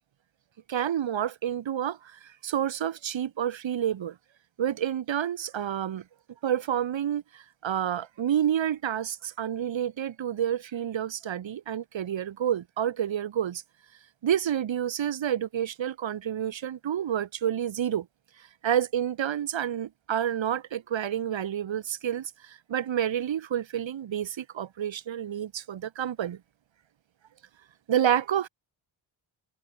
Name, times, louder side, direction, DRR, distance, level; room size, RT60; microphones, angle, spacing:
voice 1, 0.7-4.2 4.6-6.0 6.4-13.6 14.2-18.1 18.6-26.4 27.9-28.5, right 10 dB, 65° right, 2.1 m, -29 dB
cardioid pair, 85°, 48 cm